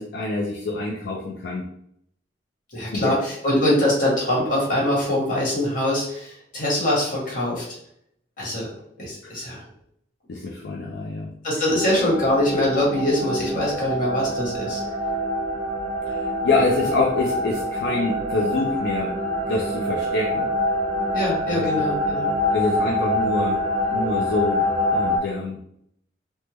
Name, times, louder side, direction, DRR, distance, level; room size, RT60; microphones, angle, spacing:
voice 1, 0.0-1.6 2.9-3.1 9.2-9.4 10.3-11.3 16.1-19.2 19.5-20.5 21.5-21.6 22.5-23.6 23.9-24.6 24.9-25.6, left 3 dB, 70° left, -1 dB, 0.4 m, -26 dB
voice 2, 2.7-7.6 8.4-9.6 11.4-14.8 21.1-22.3, left 1 dB, 50° left, -4 dB, 1.4 m, -23 dB
sound 1, 11.7-25.2, left 1 dB, 40° right, 0.4 m, -25 dB
3.4 x 2.1 x 3.0 m, 0.70 s
head